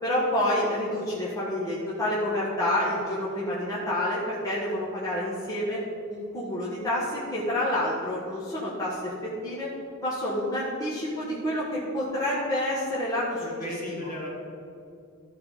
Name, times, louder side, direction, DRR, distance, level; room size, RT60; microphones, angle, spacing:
voice 1, 0.0-5.8 6.1-9.7 10.0-13.4 13.9-14.1, left 1 dB, 15° left, -9 dB, 1.6 m, -28 dB
voice 2, 13.4-14.3, equal, 40° left, -4 dB, 2.4 m, -36 dB
14.0 x 4.8 x 5.0 m, 2.5 s
head